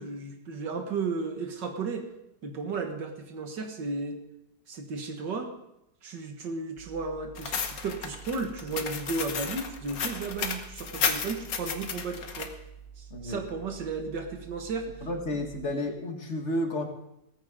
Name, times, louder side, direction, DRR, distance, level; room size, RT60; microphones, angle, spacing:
voice 1, 0.0-2.1 2.4-4.2 4.7-5.5 6.0-12.5 13.0-14.9, right 4 dB, 85° right, 4 dB, 2.2 m, -34 dB
sound 1, 6.8-15.7, right 7 dB, 15° right, 5.5 m, -49 dB
sound 2, 7.4-12.5, left 6 dB, 60° left, 1.5 m, -33 dB
voice 2, 13.1-13.4 15.0-16.9, left 1 dB, 40° left, 3 dB, 1.9 m, -31 dB
17.5 x 14.0 x 3.8 m, 0.82 s
omnidirectional pair, 1.9 m